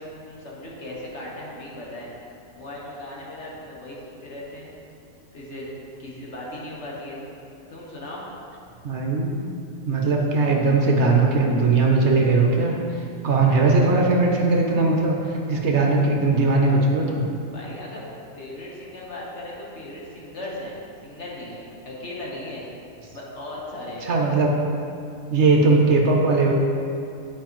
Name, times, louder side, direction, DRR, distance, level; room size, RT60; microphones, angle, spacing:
voice 1, 0.0-2.1 2.5-4.7 5.3-5.7 6.0-7.2 7.7-8.2 17.5-18.1 18.4-20.8 21.0-22.7 23.1-24.1, left 1 dB, 60° left, -4 dB, 1.5 m, -37 dB
voice 2, 8.8-9.4 9.9-12.8 13.2-17.2 24.0-24.5 25.3-26.5, right 3 dB, 60° right, 0 dB, 1.0 m, -19 dB
9.4 x 4.7 x 3.0 m, 2.6 s
omnidirectional pair, 1.4 m